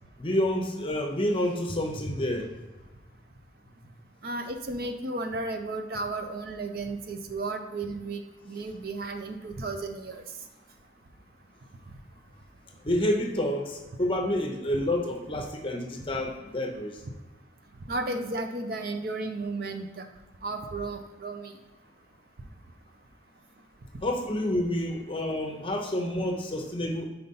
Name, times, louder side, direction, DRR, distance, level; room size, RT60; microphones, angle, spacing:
voice 1, 0.2-2.6 12.8-17.0 24.0-27.0, left 1 dB, 30° left, 3 dB, 0.7 m, -29 dB
voice 2, 4.2-10.2 15.3-15.4 17.9-20.1 20.4-21.5, right 2 dB, 50° right, 6 dB, 0.5 m, -34 dB
4.4 x 4.0 x 5.5 m, 1.1 s
head